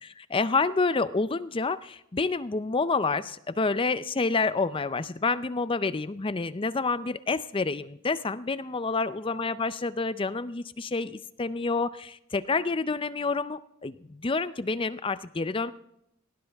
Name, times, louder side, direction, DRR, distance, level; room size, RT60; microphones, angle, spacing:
voice 1, 0.0-15.7, left 4 dB, 25° left, 15 dB, 0.5 m, -28 dB
19.0 x 18.0 x 3.5 m, 0.77 s
head